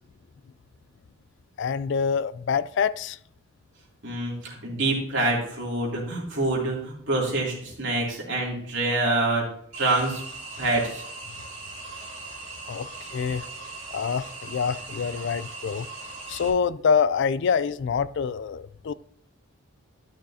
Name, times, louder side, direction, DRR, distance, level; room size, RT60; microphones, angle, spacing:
voice 1, 1.6-3.2 12.7-13.5 13.9-15.9 16.3-18.9, left 6 dB, 55° left, 0.3 m, -26 dB
voice 2, 4.0-9.4 9.7-10.2 10.6-11.0, right 2 dB, 55° right, 3.0 m, -26 dB
sound 1, 9.7-16.5, right 3 dB, 35° right, 3.2 m, -39 dB
11.5 x 6.4 x 2.8 m
head